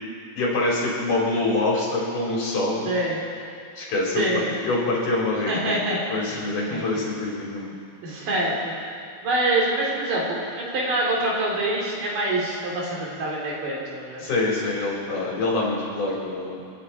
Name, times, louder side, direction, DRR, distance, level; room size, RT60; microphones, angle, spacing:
voice 1, 0.3-2.9 3.8-5.8 6.1-7.7 14.2-16.6, left 2 dB, 65° left, -5 dB, 5.6 m, -25 dB
voice 2, 2.9-3.2 4.1-4.5 5.5-6.0 6.3-6.4 6.7-6.8 8.0-8.8 9.2-14.2, right 1 dB, 75° right, -4 dB, 4.8 m, -25 dB
29.5 x 11.0 x 4.3 m, 2.4 s
omnidirectional pair, 3.9 m